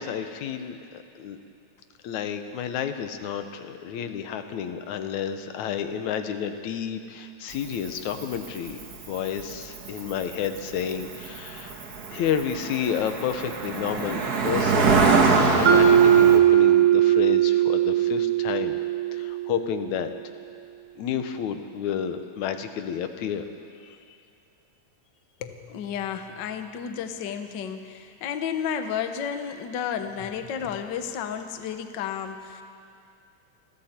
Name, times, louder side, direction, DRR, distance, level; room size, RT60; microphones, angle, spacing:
voice 1, 0.0-1.4 2.0-8.8 9.1-11.8 12.1-14.9 15.6-18.8 19.1-20.1 21.0-23.5 23.8-24.0, left 8 dB, 70° left, 8 dB, 2.3 m, -30 dB
Cricket, 7.5-16.4, right 4 dB, 45° right, 1.3 m, -25 dB
Mallet percussion, 15.7-19.7, right 10 dB, 75° right, 2.7 m, -19 dB
voice 2, 25.4-32.6, left 8 dB, 90° left, 7 dB, 0.9 m, -32 dB
28.5 x 21.5 x 4.4 m, 2.4 s
omnidirectional pair, 3.6 m